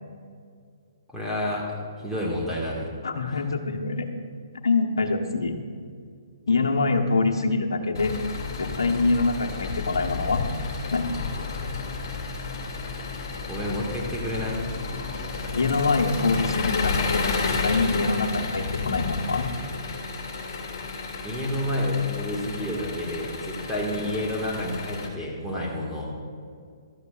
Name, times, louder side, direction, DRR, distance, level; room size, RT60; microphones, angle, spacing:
voice 1, 1.1-1.6 2.0-2.9 3.3-3.4 13.5-14.7 21.2-26.2, left 1 dB, ahead, -6 dB, 1.9 m, -29 dB
voice 2, 3.0-4.1 4.6-5.5 6.5-8.1 8.6-10.4 10.9-11.1 15.5-19.5, left 3 dB, 75° left, 2 dB, 1.2 m, -25 dB
Engine, 7.9-25.1, left 4 dB, 50° left, 2.3 m, -32 dB
15.0 x 12.5 x 2.5 m, 2.1 s
figure-of-eight pair, 130°, 2 cm